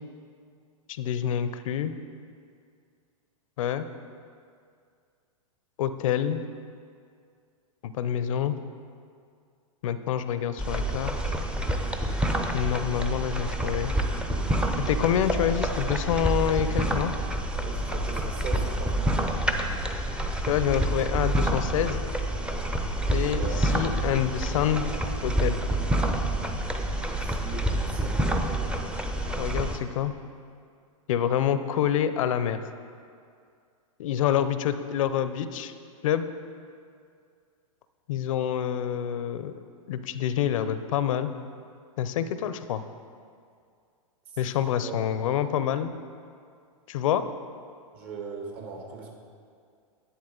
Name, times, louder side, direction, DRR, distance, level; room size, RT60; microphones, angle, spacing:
voice 1, 1.0-1.9 3.6-3.9 5.8-6.4 7.8-8.6 9.8-11.4 12.5-13.9 14.8-17.1 20.5-22.0 23.1-24.9 25.2-25.6 29.4-30.1 31.1-32.6 34.0-35.7 36.0-36.3 38.1-39.5 39.9-41.3 42.0-42.8 44.4-45.9 46.9-47.2, left 9 dB, 65° left, 12 dB, 0.6 m, -27 dB
sound 1, 10.6-29.8, right 1 dB, 5° right, 0.6 m, -28 dB
voice 2, 17.6-19.3 23.4-23.7 27.2-29.0 44.3-44.4 44.8-44.9 45.2-45.3 47.9-49.1, right 5 dB, 50° right, 1 dB, 1.9 m, -40 dB
11.0 x 8.4 x 3.8 m, 2.2 s
hypercardioid pair, 110°, 18 cm